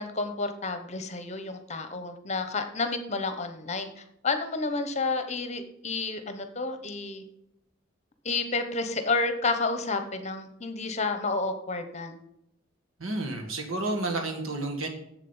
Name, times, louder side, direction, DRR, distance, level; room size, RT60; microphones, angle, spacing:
voice 1, 0.0-7.2 8.2-12.2, left 3 dB, 30° left, 8 dB, 0.9 m, -30 dB
voice 2, 13.0-14.9, right 2 dB, 75° right, 3 dB, 1.7 m, -31 dB
7.5 x 7.4 x 5.5 m, 0.82 s
head